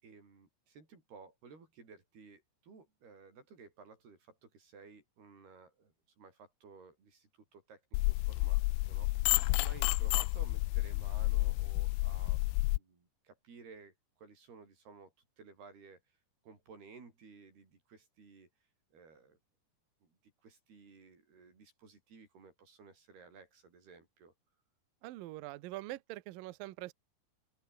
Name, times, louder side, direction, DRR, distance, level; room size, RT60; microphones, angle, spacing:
voice 1, 0.0-7.8 8.1-12.5 12.8-16.0 16.4-18.5 18.9-19.4 20.0-24.3, right 5 dB, 55° right, 8.7 m, -56 dB
sound 1, 7.9-12.8, left 24 dB, 90° left, 3.1 m, -30 dB
voice 2, 25.0-26.9, right 17 dB, 85° right, 2.0 m, -43 dB
open air
omnidirectional pair, 5.5 m